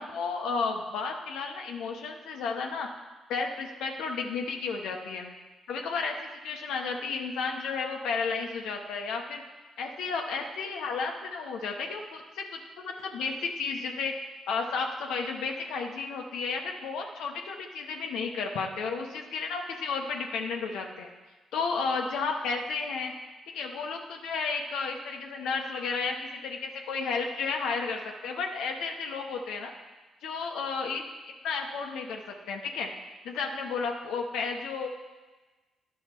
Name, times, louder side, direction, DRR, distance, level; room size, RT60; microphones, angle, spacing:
voice 1, 0.0-2.9 3.3-5.3 5.7-9.4 9.8-12.6 12.8-14.1 14.5-21.1 21.5-23.1 23.5-29.7 30.2-31.0 31.4-32.9 33.2-34.9, left 4 dB, 75° left, 2 dB, 0.9 m, -32 dB
10.5 x 5.6 x 4.4 m, 1.3 s
hypercardioid pair, 50°, 0 cm